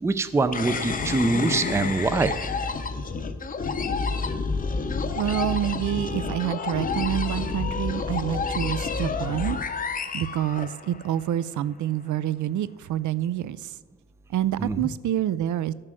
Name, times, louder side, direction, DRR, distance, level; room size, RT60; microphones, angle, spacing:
voice 1, 0.0-2.4 14.6-14.9, right 3 dB, 10° right, 12 dB, 0.4 m, -24 dB
sound 1, 0.5-11.1, left 4 dB, 30° left, 0.7 m, -29 dB
voice 2, 5.2-9.6 10.1-13.8 14.3-15.7, right 11 dB, 70° right, 17 dB, 0.5 m, -27 dB
12.0 x 7.6 x 6.2 m, 1.4 s
wide cardioid pair, 155°, 30 cm